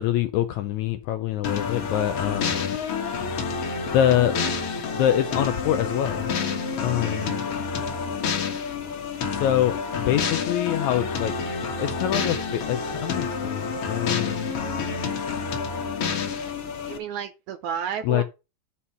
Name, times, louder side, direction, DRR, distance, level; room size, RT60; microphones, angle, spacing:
voice 1, 0.0-2.8 3.5-3.6 3.9-4.4 4.9-6.3 6.8-7.4 9.3-11.3 11.8-14.5 18.0-18.2, left 12 dB, 85° left, 1.6 m, -25 dB
sound 1, 1.4-17.0, left 5 dB, 50° left, 2.0 m, -28 dB
voice 2, 7.0-7.5 16.9-18.2, right 8 dB, 75° right, 1.9 m, -32 dB
11.5 x 4.3 x 5.6 m
omnidirectional pair, 4.1 m